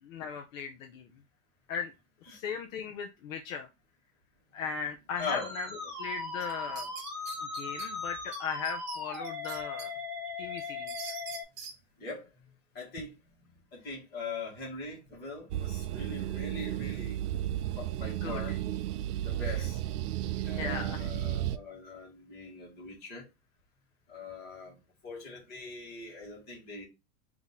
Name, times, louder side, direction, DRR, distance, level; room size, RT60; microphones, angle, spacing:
voice 1, 0.0-1.2 1.7-1.9 2.3-3.7 4.5-5.7 6.0-6.9 7.4-9.9 10.4-11.2 18.0-18.6 19.5-19.6 20.4-21.1, left 6 dB, 60° left, 0.7 m, -38 dB
voice 2, 5.2-5.5 12.0-12.3 12.7-13.1 13.4-17.2 17.8-18.6 19.2-19.8 20.4-23.3 24.1-24.8 25.0-26.8, left 3 dB, 20° left, 1.8 m, -41 dB
Musical instrument, 5.2-11.4, left 3 dB, ahead, 1.2 m, -39 dB
sound 1, 6.4-7.9 8.3-8.4 8.6-9.9 10.3-11.7, right 6 dB, 40° right, 1.0 m, -43 dB
sound 2, 15.5-21.6, right 13 dB, 75° right, 0.5 m, -33 dB
3.7 x 2.9 x 4.0 m
supercardioid pair, 175°, 46 cm